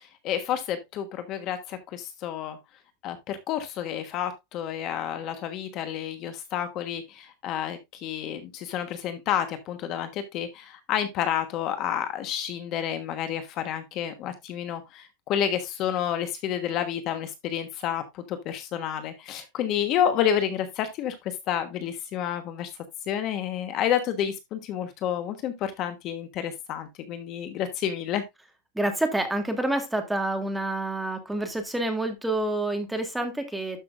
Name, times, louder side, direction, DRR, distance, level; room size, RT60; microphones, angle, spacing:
voice 1, 0.0-2.6 3.0-22.7 23.1-28.2, left 9 dB, 35° left, 1.2 m, -30 dB
voice 2, 28.7-33.8, right 1 dB, 5° right, 1.6 m, -28 dB
12.0 x 6.0 x 2.5 m
supercardioid pair, 155°, 0 cm